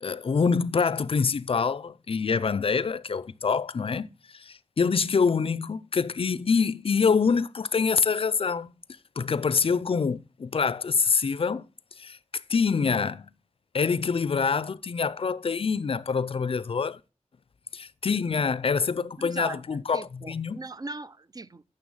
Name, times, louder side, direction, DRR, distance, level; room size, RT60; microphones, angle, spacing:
voice 1, 0.0-8.7 9.2-11.6 12.0-13.3 13.7-17.0 17.7-20.6, left 5 dB, 50° left, 0.4 m, -26 dB
voice 2, 19.0-21.7, right 2 dB, 30° right, 0.4 m, -40 dB
9.4 x 6.8 x 5.5 m
wide cardioid pair, 90°, 12 cm